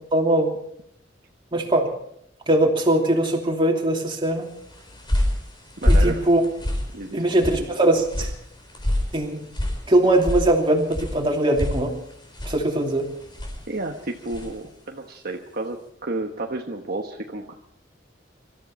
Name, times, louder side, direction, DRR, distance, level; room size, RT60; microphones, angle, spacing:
voice 1, 0.1-0.5 1.5-1.9 2.5-4.5 5.9-6.4 7.1-8.3 9.1-9.4 9.9-11.9 12.5-13.1, right 1 dB, 30° right, 0 dB, 2.9 m, -21 dB
sound 1, 4.5-14.6, left 1 dB, 25° left, 4.2 m, -27 dB
voice 2, 5.8-6.2 6.9-7.2 13.7-17.5, right 2 dB, 55° right, 1 dB, 1.3 m, -31 dB
24.5 x 13.5 x 4.3 m, 0.71 s
head